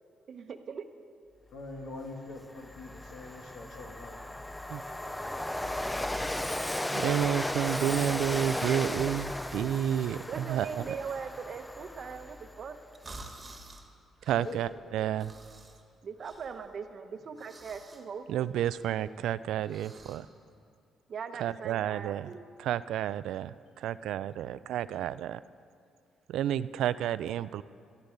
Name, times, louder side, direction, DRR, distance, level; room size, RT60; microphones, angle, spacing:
voice 1, 0.3-0.8 10.3-12.8 16.0-18.3 21.1-22.4, right 6 dB, 55° right, 8 dB, 0.9 m, -40 dB
voice 2, 1.5-4.2 4.8-6.3 14.4-14.6 20.3-20.6 24.2-24.3 24.7-24.8, left 3 dB, 80° left, 1 dB, 2.2 m, -45 dB
Train, 1.8-1.9 2.3-12.7, left 1 dB, 10° left, 0.4 m, -35 dB
voice 3, 6.9-10.9 14.3-15.3 18.3-20.3 21.3-22.3 22.6-25.4 26.3-27.6, right 11 dB, 80° right, 16 dB, 0.3 m, -31 dB
sound 1, 11.8-20.2, right 2 dB, 25° right, 1.6 m, -53 dB
13.5 x 12.0 x 5.2 m, 2.3 s
cardioid pair, 90°, 0 cm